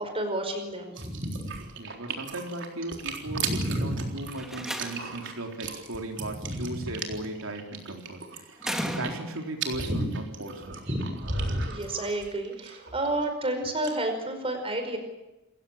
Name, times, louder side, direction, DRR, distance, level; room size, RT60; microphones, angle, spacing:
voice 1, 0.0-1.5 3.3-4.1 6.2-6.9 9.9-10.1 10.9-11.2 11.7-15.0, right 1 dB, 25° right, 6 dB, 5.1 m, -31 dB
sound 1, 1.0-13.5 13.7-13.9, right 4 dB, 60° right, 3.8 m, -36 dB
voice 2, 1.8-10.7, right 1 dB, 80° right, 3 dB, 3.5 m, -37 dB
Slam, 4.3-5.3 6.8-7.3 8.6-9.6, equal, ahead, 2.4 m, -35 dB
28.0 x 16.0 x 8.8 m, 1.0 s
head